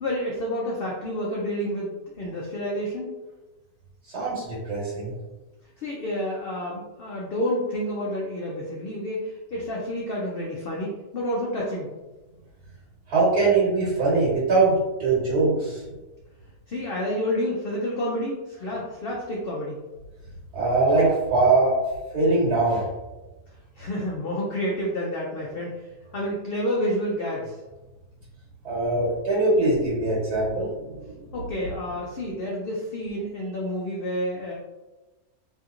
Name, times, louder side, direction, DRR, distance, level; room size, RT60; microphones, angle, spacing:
voice 1, 0.0-3.1 5.8-11.9 16.7-19.8 23.8-27.6 31.3-34.5, equal, 90° left, -3 dB, 0.5 m, -29 dB
voice 2, 4.1-5.1 13.1-15.9 20.5-21.8 22.1-22.9 28.6-31.1, right 3 dB, 85° right, -9 dB, 1.8 m, -22 dB
3.2 x 2.9 x 2.4 m, 1.1 s
omnidirectional pair, 1.6 m